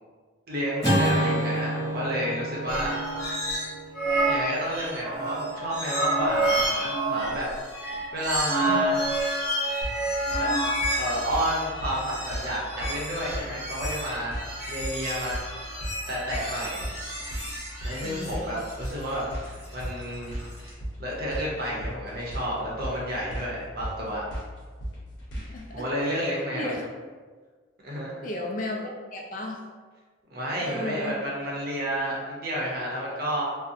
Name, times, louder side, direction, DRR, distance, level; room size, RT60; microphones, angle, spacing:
voice 1, 0.5-3.0 3.3-3.4 4.2-7.5 8.1-9.0 10.4-10.5 11.0-15.3 16.1-16.9 17.8-20.5 21.0-24.2 25.5-26.7 27.8-28.2 30.3-33.4, equal, 50° right, -5 dB, 0.6 m, -31 dB
Acoustic guitar / Strum, 0.8-5.2, right 1 dB, 20° left, 0.8 m, -29 dB
sound 1, 2.7-3.7 3.9-20.7, right 1 dB, ahead, 1.2 m, -29 dB
sound 2, 9.8-25.7, equal, 75° left, 0.7 m, -37 dB
voice 2, 18.0-18.6 25.3-25.9 26.5-26.8 28.2-29.6 30.6-31.2, left 1 dB, 40° left, 0 dB, 0.3 m, -34 dB
2.6 x 2.0 x 2.6 m, 1.5 s
head